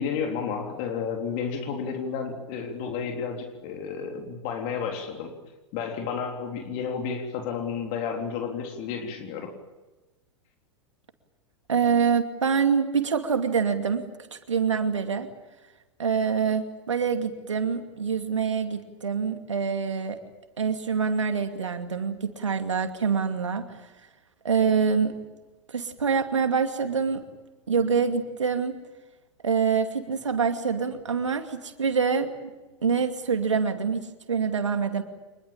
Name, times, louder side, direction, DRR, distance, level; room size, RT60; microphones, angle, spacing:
voice 1, 0.0-5.3 5.7-9.5, left 6 dB, 50° left, 3 dB, 3.6 m, -31 dB
voice 2, 11.7-14.0 14.3-15.3 16.0-20.2 20.6-23.7 24.4-25.1 25.7-27.2 27.7-28.7 29.4-32.5 32.8-35.0, right 6 dB, 80° right, 7 dB, 2.5 m, -25 dB
26.0 x 21.5 x 8.9 m, 1.1 s
figure-of-eight pair, 95°, 15 cm